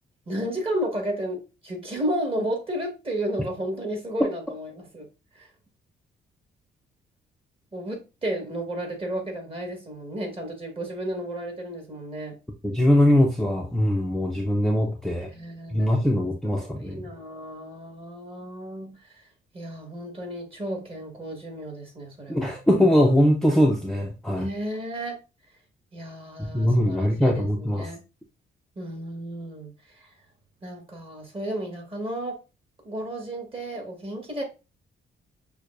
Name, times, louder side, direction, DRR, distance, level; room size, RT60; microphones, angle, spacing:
voice 1, 0.3-5.1 5.3-5.5 7.7-12.3 15.3-16.1 16.6-19.2 19.5-22.5 24.3-25.2 25.9-28.0 28.7-30.1 30.6-32.4 32.8-34.4, right 1 dB, 30° right, 1.7 m, -33 dB
voice 2, 12.6-15.3 15.7-17.1 22.3-24.4 26.4-27.9, equal, ahead, 0.6 m, -21 dB
6.3 x 2.2 x 2.5 m
cardioid pair, 90°, 20 cm